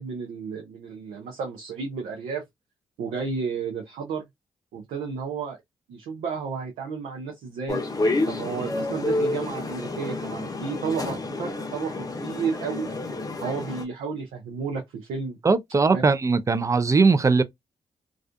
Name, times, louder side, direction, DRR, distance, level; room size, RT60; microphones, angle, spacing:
voice 1, 0.0-2.4 3.0-4.2 4.7-5.6 5.9-7.8 8.3-12.9 13.4-15.4 15.9-16.0, right 5 dB, 80° right, 0.6 m, -32 dB
sound 1, 7.7-13.8, left 2 dB, 30° left, 0.7 m, -29 dB
voice 2, 15.4-17.4, right 4 dB, 25° right, 0.4 m, -20 dB
2.4 x 2.4 x 2.3 m
supercardioid pair, 45°, 12 cm